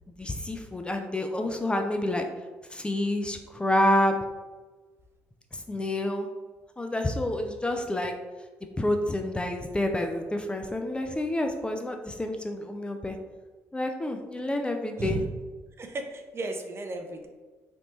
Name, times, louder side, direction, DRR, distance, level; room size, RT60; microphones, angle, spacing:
voice 1, 0.2-2.3 2.7-4.2 5.5-6.3 6.8-8.1 8.8-13.2 13.7-15.2, left 1 dB, 15° left, 4 dB, 0.4 m, -28 dB
voice 2, 15.0-15.3 15.8-17.3, right 2 dB, 40° right, 4 dB, 0.5 m, -34 dB
3.4 x 2.5 x 3.0 m, 1.3 s
hypercardioid pair, 50°, 7 cm